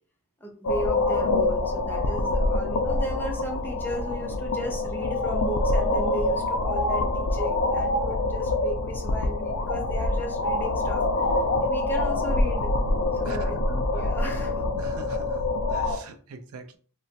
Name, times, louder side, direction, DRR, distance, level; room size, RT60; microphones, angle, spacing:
voice 1, 0.4-11.0 11.6-12.7 13.2-14.6, equal, 10° left, 1 dB, 0.5 m, -35 dB
sound 1, 0.6-16.0, left 2 dB, 75° left, 0.4 m, -25 dB
voice 2, 13.2-14.1 14.7-16.8, right 4 dB, 70° right, 9 dB, 0.4 m, -43 dB
2.9 x 2.1 x 2.8 m, 0.43 s
head